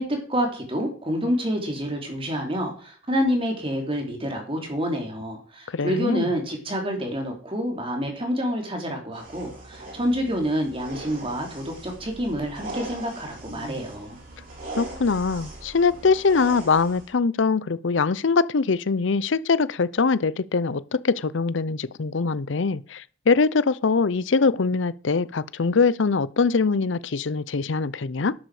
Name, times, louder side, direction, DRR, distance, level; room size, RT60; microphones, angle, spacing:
voice 1, 0.0-14.2, equal, 30° right, 3.2 m, -28 dB
voice 2, 5.7-6.3 14.8-28.3, left 4 dB, 70° left, 0.6 m, -23 dB
sound 1, 9.1-17.1, right 2 dB, 45° right, 6.4 m, -40 dB
12.5 x 11.0 x 4.9 m
head